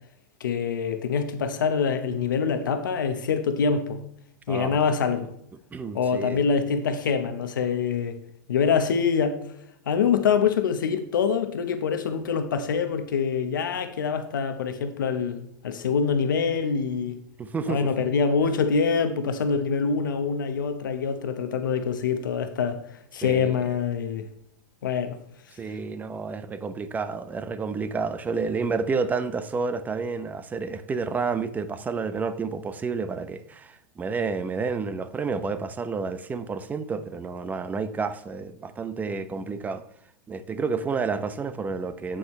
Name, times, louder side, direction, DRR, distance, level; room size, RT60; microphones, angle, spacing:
voice 1, 0.4-4.0 4.5-5.3 5.9-8.2 8.5-9.4 9.9-17.2 17.7-22.8 23.1-24.3 24.8-25.2, left 6 dB, 90° left, 1.0 m, -25 dB
voice 2, 4.5-4.8 5.7-6.4 17.4-17.9 23.2-23.6 25.6-39.8 40.3-42.2, right 4 dB, 15° right, 0.6 m, -30 dB
8.3 x 7.7 x 3.1 m
hypercardioid pair, 130°, 10 cm